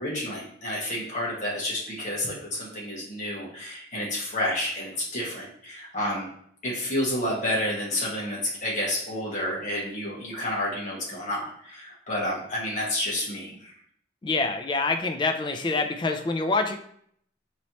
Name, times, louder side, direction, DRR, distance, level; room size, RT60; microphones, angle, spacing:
voice 1, 0.0-6.3 6.6-13.7, left 1 dB, 40° left, -4 dB, 1.2 m, -30 dB
voice 2, 14.2-16.7, left 3 dB, 25° left, 5 dB, 0.3 m, -26 dB
4.1 x 3.1 x 2.9 m, 0.65 s
head